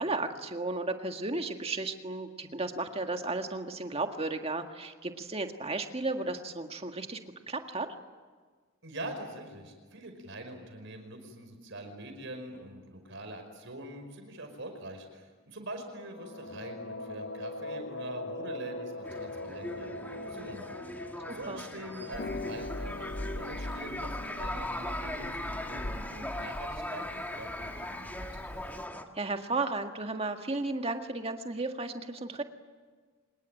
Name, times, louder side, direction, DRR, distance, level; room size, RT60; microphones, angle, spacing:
voice 1, 0.0-7.2 7.5-7.9 21.3-21.6 29.2-32.4, right 3 dB, 30° right, 5 dB, 1.8 m, -34 dB
voice 2, 8.8-20.6 21.2-28.3, right 1 dB, 65° right, 6 dB, 5.4 m, -44 dB
sound 1, 15.8-24.4, left 2 dB, 70° left, 2.2 m, -42 dB
sound 2, 19.0-29.0, left 1 dB, 10° left, 1.7 m, -39 dB
Harp, 22.1-28.9, left 1 dB, 50° left, 2.2 m, -41 dB
25.5 x 21.0 x 9.2 m, 1.5 s
head